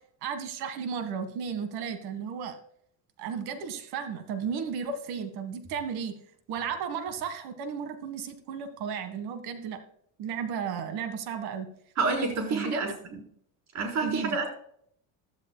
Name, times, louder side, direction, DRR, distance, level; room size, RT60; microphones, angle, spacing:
voice 1, 0.2-2.6 3.2-6.1 6.5-9.8 10.2-11.7 12.5-12.8 14.0-14.4, right 6 dB, 65° right, 10 dB, 1.8 m, -34 dB
voice 2, 12.0-12.9 13.7-14.5, right 4 dB, 40° right, 1 dB, 4.3 m, -28 dB
15.5 x 12.5 x 2.3 m, 0.65 s
cardioid pair, 155°, 40 cm